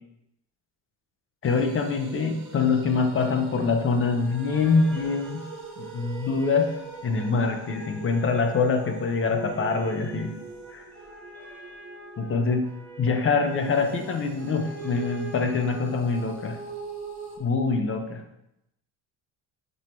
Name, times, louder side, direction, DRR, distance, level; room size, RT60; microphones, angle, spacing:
voice 1, 1.4-5.4 5.8-6.7 7.0-10.3 10.7-10.8 12.2-16.6 17.4-18.2, left 4 dB, 30° left, 5 dB, 0.7 m, -25 dB
sound 1, 1.4-12.9 13.6-17.4, right 4 dB, 40° right, 1.1 m, -42 dB
sound 2, 2.8-16.2, equal, 5° left, 1.6 m, -47 dB
5.4 x 4.6 x 4.4 m, 0.83 s
cardioid pair, 155°, 43 cm